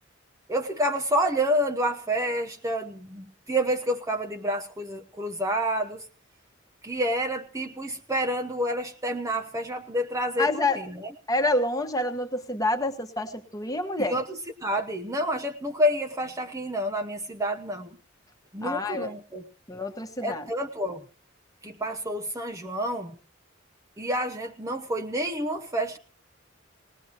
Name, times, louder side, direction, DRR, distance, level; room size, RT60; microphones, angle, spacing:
voice 1, 0.5-6.1 6.8-11.1 14.0-18.0 18.5-19.4 20.2-21.0 21.6-23.1 24.0-26.0, equal, 15° right, 4 dB, 0.9 m, -29 dB
voice 2, 10.4-10.8 11.3-14.2 18.6-19.1 19.7-20.4, left 2 dB, 15° left, 6 dB, 1.4 m, -27 dB
20.0 x 19.0 x 3.0 m, 0.38 s
head